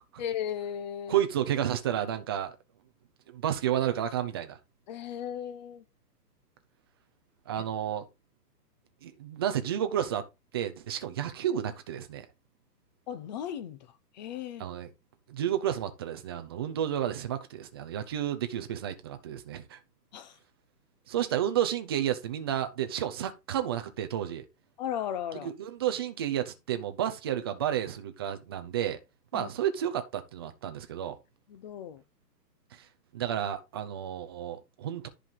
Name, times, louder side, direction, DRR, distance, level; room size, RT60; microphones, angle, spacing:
voice 1, 0.2-1.2 4.9-5.8 7.6-7.7 13.1-13.9 14.1-14.7 20.1-20.4 24.8-25.5 29.3-29.5 31.5-32.0, left 9 dB, 25° left, 0.8 m, -36 dB
voice 2, 1.1-2.5 3.3-4.6 7.5-8.0 9.0-10.2 10.5-12.2 14.6-14.9 15.3-19.8 21.1-24.4 25.4-29.0 29.3-31.2 32.7-32.8 33.1-35.1, right 10 dB, 15° right, 0.5 m, -31 dB
10.5 x 5.0 x 3.9 m
hypercardioid pair, 145°, 49 cm